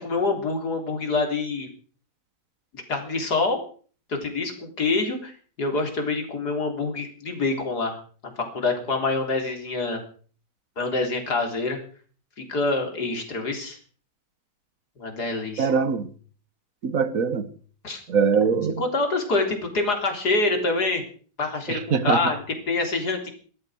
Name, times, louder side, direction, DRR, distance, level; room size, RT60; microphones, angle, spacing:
voice 1, 0.0-1.7 2.9-3.6 4.1-5.3 5.6-8.0 8.4-10.0 10.8-11.8 12.5-13.8 15.0-15.7 17.8-18.0 18.8-21.0 21.4-23.3, left 3 dB, 65° left, 4.1 m, -26 dB
voice 2, 15.6-16.1 16.8-17.5 18.1-18.8 21.7-22.3, right 6 dB, 55° right, 1.7 m, -22 dB
17.0 x 13.5 x 6.3 m
omnidirectional pair, 1.8 m